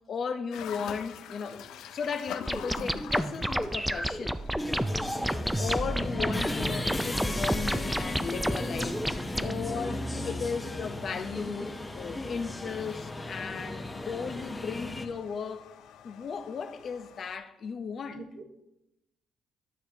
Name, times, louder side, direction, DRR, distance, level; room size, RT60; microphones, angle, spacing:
voice 1, 0.1-4.4 5.6-9.0 9.4-15.7 16.0-18.3, left 5 dB, 55° left, 0.7 m, -36 dB
sound 1, 0.5-17.4, left 9 dB, 85° left, 0.4 m, -48 dB
sound 2, 2.5-9.5, right 1 dB, 5° right, 0.4 m, -30 dB
sound 3, 4.6-15.1, left 1 dB, 15° left, 0.8 m, -35 dB
voice 2, 9.3-10.6 18.1-18.4, right 4 dB, 70° right, 1.6 m, -45 dB
12.0 x 6.6 x 2.9 m
cardioid pair, 90°, 0 cm